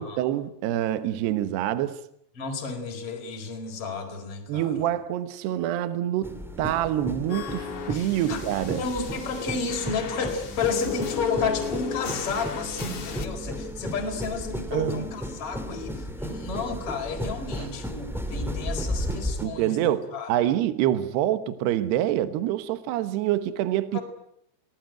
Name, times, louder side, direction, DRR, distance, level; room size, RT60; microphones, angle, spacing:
voice 1, 0.0-2.0 4.5-8.8 14.7-15.1 17.6-17.7 19.4-24.0, right 12 dB, 70° right, 3.0 m, -26 dB
voice 2, 2.4-4.7 7.9-8.4 8.8-20.3 23.9-24.0, left 4 dB, 30° left, 4.9 m, -31 dB
sound 1, 6.2-19.4, equal, ahead, 0.8 m, -34 dB
sound 2, 7.3-13.3, left 7 dB, 50° left, 1.7 m, -36 dB
29.5 x 19.5 x 9.1 m
omnidirectional pair, 5.6 m